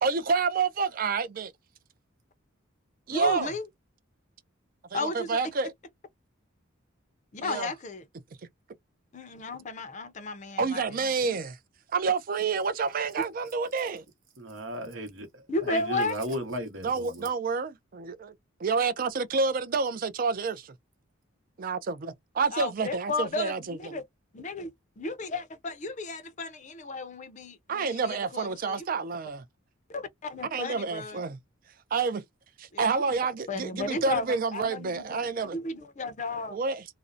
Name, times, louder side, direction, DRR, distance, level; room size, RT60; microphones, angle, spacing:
voice 1, 0.0-1.5 3.1-3.5 4.9-5.7 7.4-7.7 10.6-11.6 11.9-14.0 16.8-18.3 18.6-20.7 21.6-24.0 27.7-29.4 30.4-31.4 31.9-32.2 32.6-35.6 36.5-36.8, right 4 dB, 45° right, 0.4 m, -29 dB
voice 2, 3.1-3.6 4.9-5.4 7.3-8.0 9.1-10.8 11.2-11.4 15.5-16.2 22.5-24.0 24.3-24.7 25.0-28.9 29.9-31.3 32.7-33.0 33.5-34.3 34.5-36.6, left 3 dB, 35° left, 0.5 m, -34 dB
voice 3, 14.4-17.3, equal, 70° right, 0.9 m, -35 dB
2.5 x 2.0 x 2.5 m
head